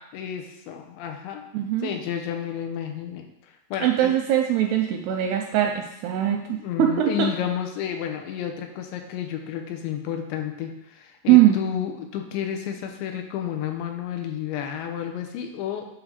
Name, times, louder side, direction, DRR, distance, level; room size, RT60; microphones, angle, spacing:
voice 1, 0.1-1.5 1.8-4.1 6.5-15.9, left 9 dB, 85° left, 5 dB, 3.0 m, -31 dB
voice 2, 1.5-1.9 3.8-7.3 11.3-11.6, right 12 dB, 85° right, 3 dB, 2.3 m, -21 dB
9.0 x 3.8 x 6.6 m, 0.82 s
omnidirectional pair, 5.2 m